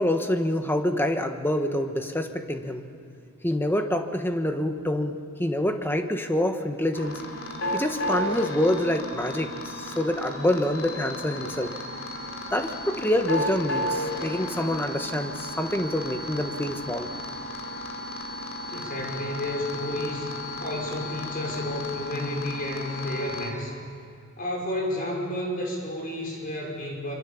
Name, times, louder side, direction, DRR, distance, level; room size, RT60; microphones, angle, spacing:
voice 1, 0.0-2.9 3.4-7.2 7.7-11.7 12.5-17.1, left 1 dB, 10° left, 6 dB, 1.3 m, -26 dB
sound 1, 6.9-23.5, left 1 dB, 85° left, 3.0 m, -34 dB
voice 2, 18.7-23.8 24.4-27.1, left 1 dB, 45° left, 0 dB, 5.7 m, -31 dB
26.0 x 24.5 x 7.1 m, 2.6 s
head